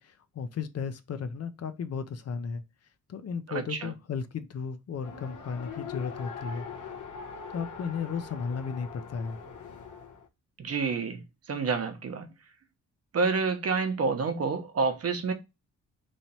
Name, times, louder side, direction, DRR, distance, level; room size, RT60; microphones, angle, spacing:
voice 1, 0.0-2.6 3.1-6.6 7.5-9.4, left 6 dB, 55° left, 0.6 m, -34 dB
voice 2, 3.5-3.9 10.6-11.2 11.5-12.3 13.1-15.3, right 4 dB, 50° right, 0.9 m, -28 dB
Race car auto racing, 5.0-10.3, left 5 dB, 85° left, 0.9 m, -42 dB
3.1 x 2.9 x 4.1 m
cardioid pair, 95°, 30 cm